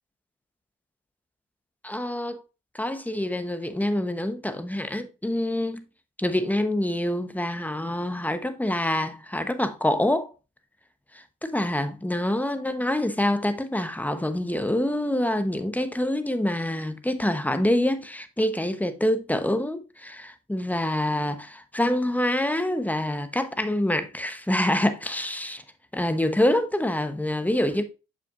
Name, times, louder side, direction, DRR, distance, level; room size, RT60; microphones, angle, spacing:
voice 1, 1.8-2.4 2.7-5.8 6.2-10.3 11.1-25.6 25.9-27.8, left 1 dB, 5° left, 1.0 m, -26 dB
6.9 x 5.8 x 2.5 m
supercardioid pair, 55°, 29 cm